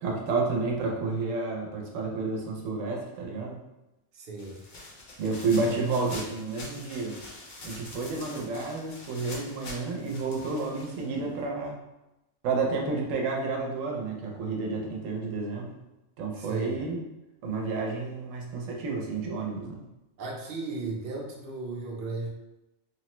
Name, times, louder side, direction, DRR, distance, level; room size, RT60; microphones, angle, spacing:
voice 1, 0.0-3.6 5.2-7.2 7.6-11.8 12.4-15.7 16.2-17.1 17.4-19.8, right 3 dB, 80° right, 0 dB, 1.0 m, -30 dB
voice 2, 4.1-4.6 16.4-16.8 20.2-22.3, right 3 dB, 55° right, -2 dB, 0.7 m, -35 dB
sound 1, 4.4-11.4, left 2 dB, 50° left, 0.6 m, -45 dB
3.1 x 2.0 x 2.9 m, 0.96 s
omnidirectional pair, 1.3 m